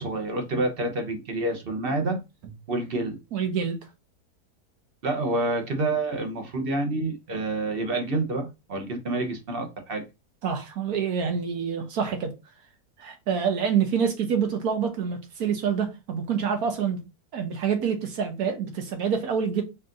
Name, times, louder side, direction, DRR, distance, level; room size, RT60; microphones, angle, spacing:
voice 1, 0.0-2.2 2.7-3.2 5.0-10.0, right 2 dB, 45° right, 0.8 m, -28 dB
voice 2, 3.3-3.8 10.4-12.3 13.0-17.0 17.3-19.6, right 7 dB, 65° right, 1.3 m, -26 dB
4.3 x 2.6 x 3.7 m
omnidirectional pair, 1.8 m